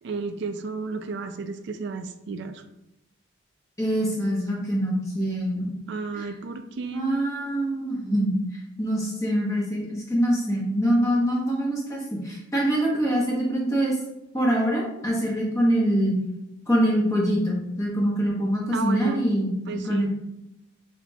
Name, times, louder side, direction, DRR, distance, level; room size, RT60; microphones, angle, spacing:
voice 1, 0.0-2.6 5.9-7.6 18.7-19.2 19.7-20.1, right 4 dB, 55° right, 9 dB, 0.3 m, -33 dB
voice 2, 3.8-5.7 6.1-6.3 6.9-8.3 8.8-13.9 14.3-16.1 16.7-19.5 19.8-20.1, equal, 15° left, -4 dB, 0.9 m, -24 dB
5.9 x 2.7 x 2.3 m, 0.89 s
head